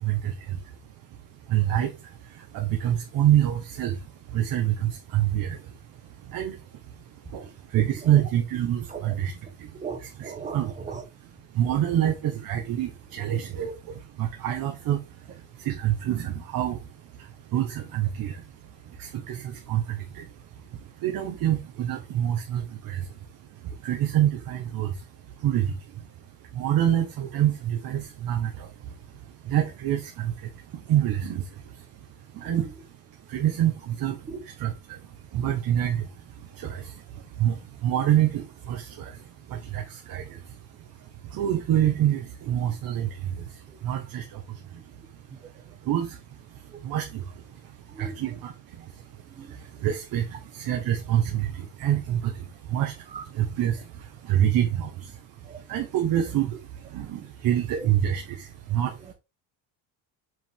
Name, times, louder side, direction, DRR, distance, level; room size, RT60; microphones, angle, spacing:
voice 1, 0.0-10.7 11.5-59.1, right 11 dB, 50° right, 1.4 m, -28 dB
voice 2, 9.7-11.0 32.4-32.6 34.3-34.4 43.7-43.8 45.4-45.5 47.9-48.2 49.3-49.5 53.1-53.2 55.4-55.6 57.8-57.9 59.0-59.1, right 5 dB, 15° right, 1.1 m, -38 dB
7.9 x 5.0 x 3.7 m
cardioid pair, 175°, 46 cm